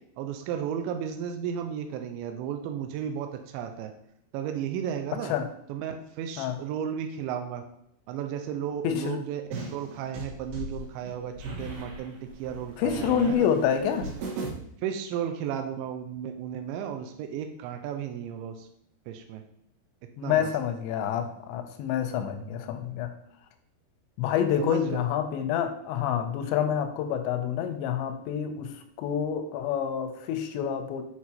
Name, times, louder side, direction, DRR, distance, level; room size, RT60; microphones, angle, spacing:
voice 1, 0.2-3.9 4.3-5.3 5.7-7.6 8.1-9.4 9.7-13.4 14.8-18.7 19.1-19.4 20.2-20.5 24.6-25.0 26.6-26.7, right 8 dB, 90° right, 5 dB, 3.0 m, -34 dB
voice 2, 8.8-9.2 12.8-14.1 20.2-23.1 24.2-28.7 29.0-31.0, left 8 dB, 85° left, 7 dB, 2.9 m, -27 dB
sound 1, 9.5-14.5, right 2 dB, 65° right, 3.5 m, -38 dB
8.2 x 4.7 x 4.3 m, 0.74 s
omnidirectional pair, 5.1 m